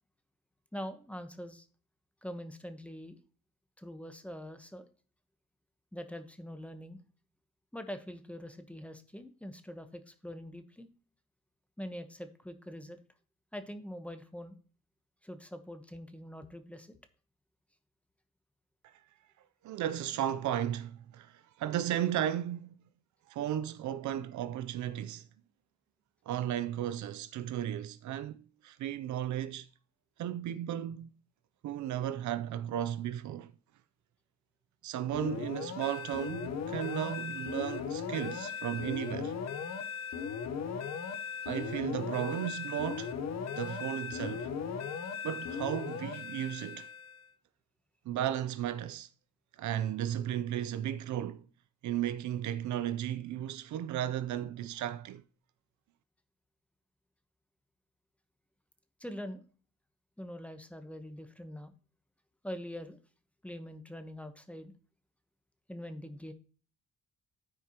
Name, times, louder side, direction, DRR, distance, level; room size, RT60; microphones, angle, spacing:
voice 1, 0.7-1.7 2.2-3.2 3.8-4.9 5.9-7.0 7.7-10.9 11.8-13.0 13.5-14.5 15.2-17.0 59.0-59.4 60.2-61.7 62.4-63.0 63.4-64.7 65.7-66.3, equal, 5° left, 1.0 m, -43 dB
voice 2, 19.6-22.7 23.3-25.2 26.3-29.7 30.2-31.1 31.6-33.5 34.8-39.4 41.5-43.1 43.6-44.5 45.2-46.9 48.1-49.1 49.6-51.5 51.8-55.2, right 11 dB, 70° right, 0.6 m, -35 dB
sound 1, 35.1-47.3, left 6 dB, 60° left, 1.0 m, -38 dB
13.0 x 4.6 x 2.9 m
cardioid pair, 90°, 30 cm